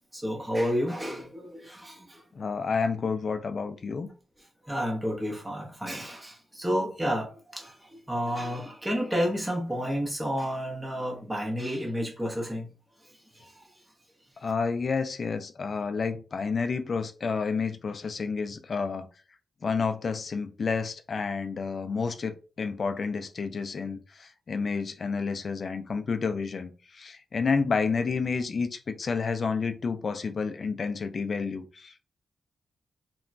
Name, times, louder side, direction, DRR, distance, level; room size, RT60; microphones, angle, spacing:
voice 1, 0.1-2.2 4.6-12.7 13.0-13.7, equal, 10° right, 0.6 m, -31 dB
voice 2, 2.3-4.1 14.4-19.1 19.6-32.0, left 5 dB, 45° left, 0.4 m, -30 dB
2.9 x 2.2 x 2.5 m
wide cardioid pair, 145°, 0 cm